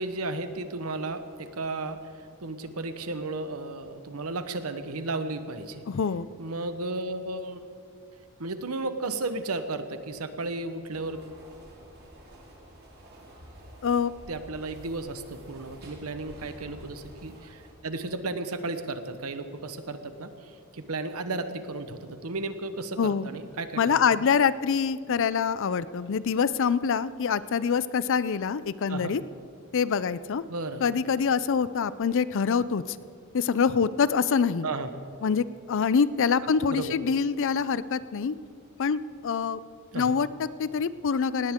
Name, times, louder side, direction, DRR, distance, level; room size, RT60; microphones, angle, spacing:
voice 1, 0.0-2.0 2.4-5.8 6.4-7.7 8.4-11.2 14.3-24.0 28.9-29.2 30.5-30.8 34.6-34.9 36.7-36.9 39.9-40.1, right 2 dB, 80° right, 9 dB, 1.0 m, -34 dB
voice 2, 5.9-6.3 13.8-14.1 23.0-23.3 23.8-29.2 29.7-30.4 30.8-33.0 33.3-34.7 35.2-38.4 38.8-39.6 39.9-41.5, left 6 dB, 60° left, 16 dB, 0.5 m, -25 dB
sound 1, 10.9-17.7, right 1 dB, 45° right, 2.7 m, -49 dB
18.5 x 17.0 x 3.7 m, 2.4 s
head